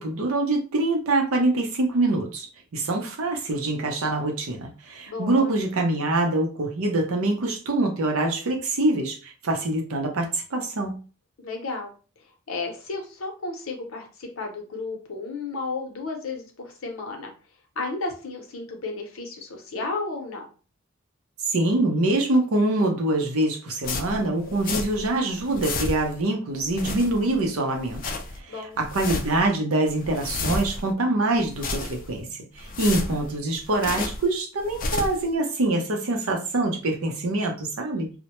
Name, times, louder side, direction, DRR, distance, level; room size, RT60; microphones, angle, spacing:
voice 1, 0.0-2.5 2.7-11.0 21.5-28.0 28.4-32.3 32.6-38.1, right 2 dB, 80° right, 3 dB, 0.6 m, -25 dB
voice 2, 5.1-5.5 11.4-11.9 12.5-17.3 17.8-20.4 28.5-28.8, left 3 dB, 70° left, 2 dB, 0.7 m, -33 dB
sound 1, 23.8-25.1 25.4-26.2 26.6-27.4 27.8-28.4 28.8-29.5 29.9-30.9 31.4-32.2 32.6-34.3 34.6-35.3, left 3 dB, 40° left, 0.3 m, -31 dB
2.1 x 2.0 x 2.9 m, 0.36 s
head